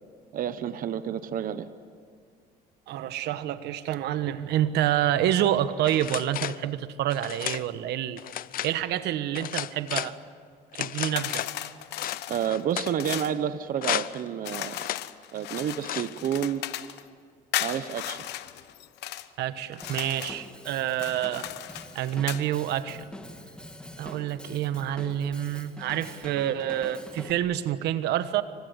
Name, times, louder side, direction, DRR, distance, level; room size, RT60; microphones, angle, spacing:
voice 1, 0.3-1.7 12.3-14.8 15.3-16.6 17.6-18.3, right 9 dB, 55° right, 12 dB, 1.0 m, -30 dB
voice 2, 2.9-8.2 8.6-10.2 10.8-11.5 19.4-21.5 21.9-23.0 24.0-28.4, right 11 dB, 80° right, 12 dB, 1.2 m, -28 dB
sound 1, 5.8-6.6 7.1-7.6 8.2-8.7 9.3-10.1 10.7-11.5 12.0-12.9 13.8-14.3 14.7-15.0 15.8-16.2, left 12 dB, 60° left, 0.7 m, -33 dB
sound 2, 11.2-13.4 14.4-17.0 17.5-19.3 19.7-20.4 20.9-22.5, left 14 dB, 80° left, 1.1 m, -36 dB
Drum kit / Drum, 19.8-27.3, left 1 dB, 5° left, 2.7 m, -45 dB
28.5 x 25.5 x 8.1 m, 2.1 s
cardioid pair, 110°, 17 cm